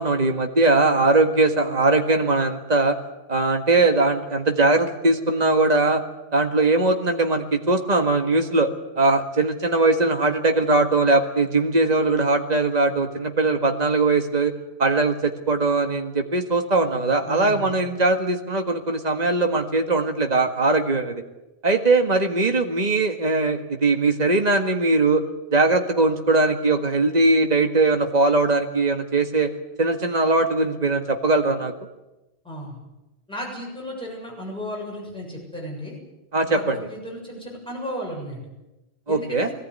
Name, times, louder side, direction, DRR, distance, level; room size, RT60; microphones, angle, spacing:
voice 1, 0.0-3.0 3.3-6.0 6.3-14.5 14.8-21.2 21.6-25.2 25.5-29.5 29.8-31.7 36.3-36.8 39.1-39.5, right 3 dB, 40° right, 4 dB, 1.9 m, -20 dB
voice 2, 17.3-17.7 32.4-32.8 33.3-36.0 36.4-38.4 39.1-39.5, equal, 5° left, -2 dB, 7.2 m, -34 dB
22.0 x 17.5 x 9.6 m, 1.0 s
omnidirectional pair, 1.1 m